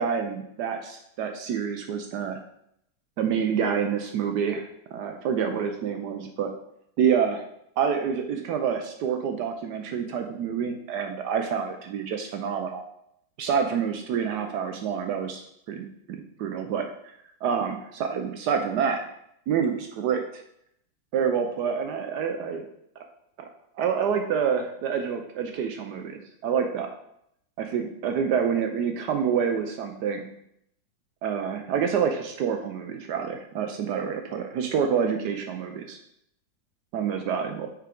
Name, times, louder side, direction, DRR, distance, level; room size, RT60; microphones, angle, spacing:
voice 1, 0.0-2.4 3.2-6.5 7.0-7.4 7.8-12.8 13.4-15.9 16.4-17.1 17.4-19.0 19.5-20.4 21.1-22.6 23.4-23.5 23.8-26.9 27.6-30.3 31.2-36.0 36.9-37.7, right 7 dB, 70° right, 5 dB, 1.0 m, -27 dB
5.7 x 4.7 x 3.7 m, 0.75 s
omnidirectional pair, 2.1 m